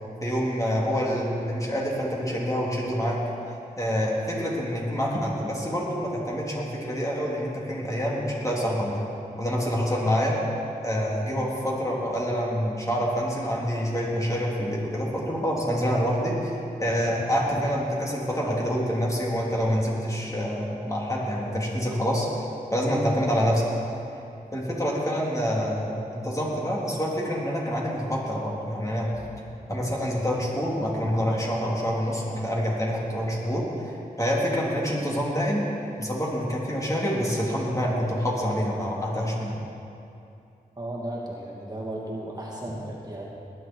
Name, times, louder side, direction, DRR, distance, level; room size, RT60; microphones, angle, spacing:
voice 1, 0.2-3.2 3.8-9.0 9.4-10.4 10.8-16.5 16.8-22.3 22.7-23.9 24.5-29.1 29.7-33.7 34.2-35.7 36.0-39.6, equal, 20° left, -5 dB, 3.4 m, -26 dB
voice 2, 40.8-43.3, right 1 dB, 25° right, -4 dB, 2.4 m, -35 dB
20.0 x 10.5 x 4.7 m, 2.6 s
wide cardioid pair, 60°, 16 cm